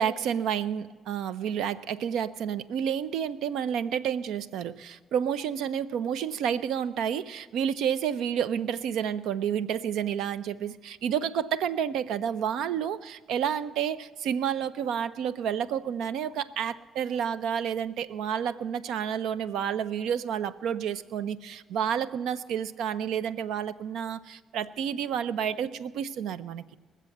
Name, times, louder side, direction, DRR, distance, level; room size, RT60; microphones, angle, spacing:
voice 1, 0.0-26.6, right 8 dB, 85° right, 0.5 m, -30 dB
21.0 x 7.4 x 7.8 m
cardioid pair, 90°, 0 cm